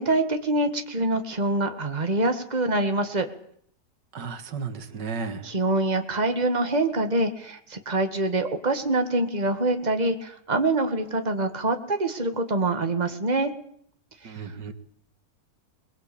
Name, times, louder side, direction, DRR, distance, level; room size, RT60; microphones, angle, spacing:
voice 1, 0.0-3.3 5.4-13.5 14.2-14.4, right 2 dB, 25° right, 6 dB, 2.1 m, -25 dB
voice 2, 4.1-5.5 14.2-14.7, right 5 dB, 90° right, 9 dB, 2.3 m, -34 dB
22.5 x 21.0 x 8.7 m, 0.66 s
omnidirectional pair, 1.8 m